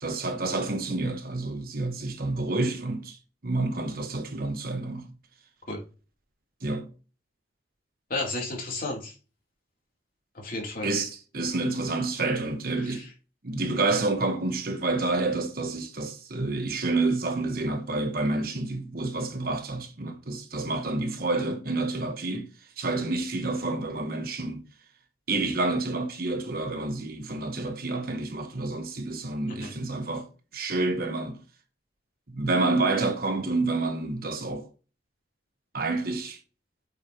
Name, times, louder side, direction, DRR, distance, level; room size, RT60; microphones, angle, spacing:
voice 1, 0.0-3.2 3.4-5.1 6.6-6.9 10.8-13.0 13.4-22.5 22.8-24.6 25.3-30.3 30.5-31.4 32.3-34.7 35.7-36.4, right 2 dB, 55° right, 1.2 m, -29 dB
voice 2, 8.1-9.1 10.3-10.9 12.8-13.1 29.5-29.7, left 2 dB, 55° left, 3.0 m, -33 dB
8.1 x 5.0 x 2.9 m
head